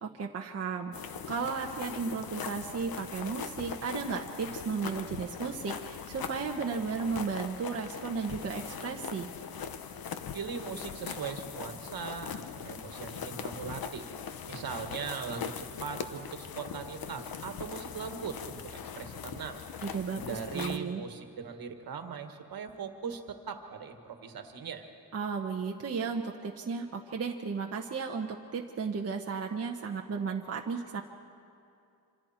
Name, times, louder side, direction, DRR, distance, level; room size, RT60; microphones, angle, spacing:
voice 1, 0.0-9.3 19.8-21.0 25.1-31.0, right 5 dB, 40° right, 1 dB, 1.0 m, -34 dB
sound 1, 0.9-20.8, left 7 dB, 60° left, 1.0 m, -41 dB
voice 2, 10.3-14.1 14.4-19.6 20.1-24.9, right 6 dB, 60° right, 5 dB, 1.7 m, -40 dB
27.0 x 26.0 x 4.4 m, 2.5 s
wide cardioid pair, 155°, 39 cm